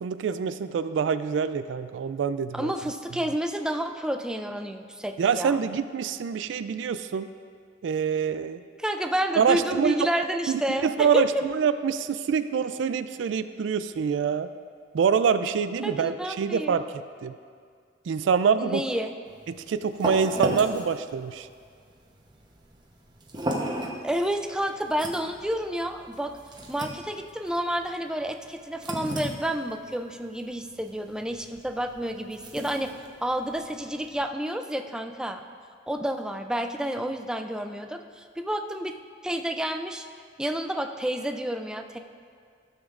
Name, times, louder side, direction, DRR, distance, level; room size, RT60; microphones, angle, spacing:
voice 1, 0.0-2.7 5.2-7.3 7.8-8.6 9.4-10.0 10.5-14.5 14.9-16.9 17.2-17.3 18.1-18.8 19.7-21.5, right 6 dB, 75° right, 12 dB, 0.3 m, -25 dB
voice 2, 2.5-5.6 8.8-10.9 11.1-11.2 15.8-16.8 18.6-19.1 24.0-26.3 26.7-32.9 33.2-35.4 35.9-38.9 39.2-40.1 40.4-42.0, equal, 5° right, 6 dB, 0.4 m, -30 dB
sound 1, 19.3-34.3, right 1 dB, 25° right, 0.9 m, -36 dB
15.0 x 7.2 x 2.5 m, 2.1 s
head